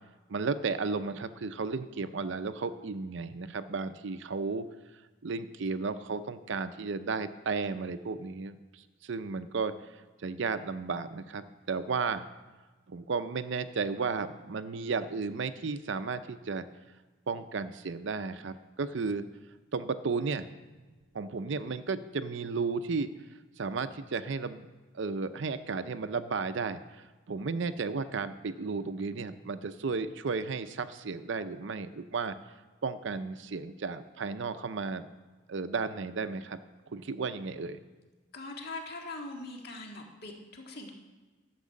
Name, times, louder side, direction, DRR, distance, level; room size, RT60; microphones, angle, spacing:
voice 1, 0.3-4.6 5.2-9.7 10.2-12.3 12.9-16.7 17.3-19.2 19.7-20.5 21.1-23.1 23.6-24.7 24.9-32.4 32.8-35.1 35.5-36.6 36.9-37.8, right 4 dB, 60° right, 12 dB, 0.5 m, -34 dB
voice 2, 38.3-40.9, left 2 dB, 50° left, 1 dB, 1.7 m, -41 dB
12.0 x 6.2 x 7.4 m, 1.3 s
head